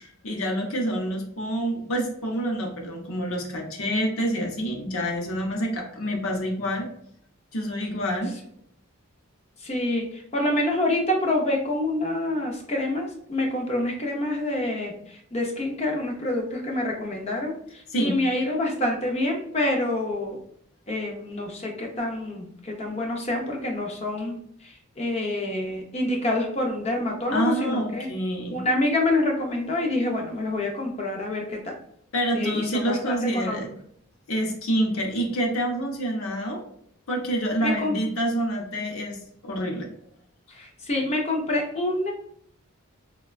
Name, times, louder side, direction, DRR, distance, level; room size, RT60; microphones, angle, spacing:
voice 1, 0.0-6.9 7.5-8.3 17.9-18.2 27.3-28.6 32.1-33.7 34.3-36.6 37.1-39.2 39.4-39.9, right 1 dB, 75° left, 1 dB, 0.7 m, -27 dB
voice 2, 9.6-20.4 20.9-24.3 24.6-28.1 28.5-31.7 32.3-33.7 37.6-37.9 40.5-42.1, left 1 dB, 30° left, 0 dB, 0.5 m, -27 dB
3.4 x 2.2 x 2.4 m, 0.69 s
head